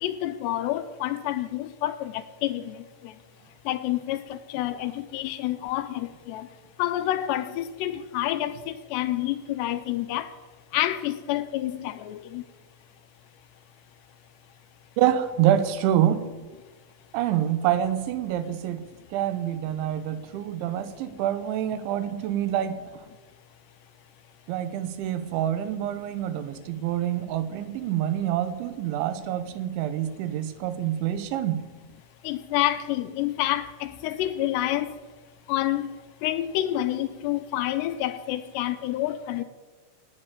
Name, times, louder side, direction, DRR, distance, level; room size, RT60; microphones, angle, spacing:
voice 1, 0.0-2.7 3.7-6.5 6.8-10.3 10.7-12.4 32.2-34.9 35.5-36.0 36.2-39.4, left 13 dB, 80° left, 2.7 m, -28 dB
voice 2, 15.0-16.3 17.1-18.8 19.1-22.8 24.5-31.6, right 11 dB, 85° right, 3.3 m, -26 dB
17.0 x 8.9 x 8.3 m
omnidirectional pair, 5.2 m